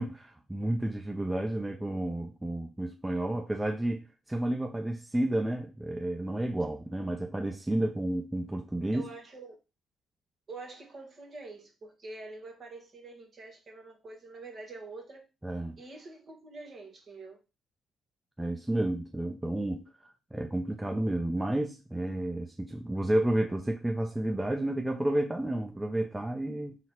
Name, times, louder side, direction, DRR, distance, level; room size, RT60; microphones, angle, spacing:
voice 1, 0.0-9.1 15.4-15.8 18.4-19.9 20.3-26.8, right 1 dB, 15° right, 0.7 m, -31 dB
voice 2, 8.9-9.5 10.5-15.3 15.8-17.4, right 3 dB, 45° right, 1.4 m, -46 dB
3.8 x 2.3 x 4.4 m
hypercardioid pair, 50°, 0 cm